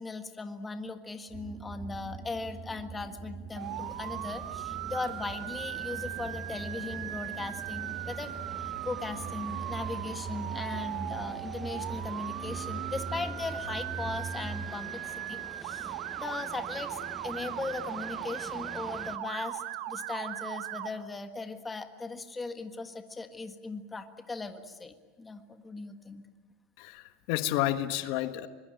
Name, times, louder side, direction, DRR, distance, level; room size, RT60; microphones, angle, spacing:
voice 1, 0.0-8.3 8.6-26.2, left 3 dB, 15° left, 7 dB, 1.6 m, -38 dB
sound 1, 1.3-14.7, right 4 dB, 35° right, 2.1 m, -42 dB
sound 2, 3.6-19.2, right 2 dB, 10° right, 1.1 m, -48 dB
Motor vehicle (road) / Siren, 3.6-20.9, right 14 dB, 65° right, 1.4 m, -39 dB
voice 2, 26.8-28.5, left 14 dB, 65° left, 10 dB, 1.4 m, -30 dB
25.0 x 22.0 x 8.9 m, 1.3 s
supercardioid pair, 140°, 0 cm